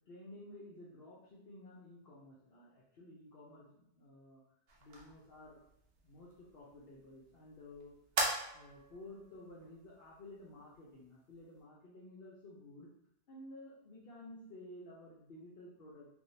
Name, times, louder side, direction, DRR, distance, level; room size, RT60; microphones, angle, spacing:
voice 1, 0.1-4.4 4.8-5.6 6.0-7.9 8.5-12.9 13.3-16.1, left 1 dB, 60° left, -6 dB, 0.9 m, -53 dB
sound 1, 4.7-11.6, right 2 dB, 85° right, 1.0 m, -43 dB
3.3 x 2.7 x 2.7 m, 0.77 s
omnidirectional pair, 1.1 m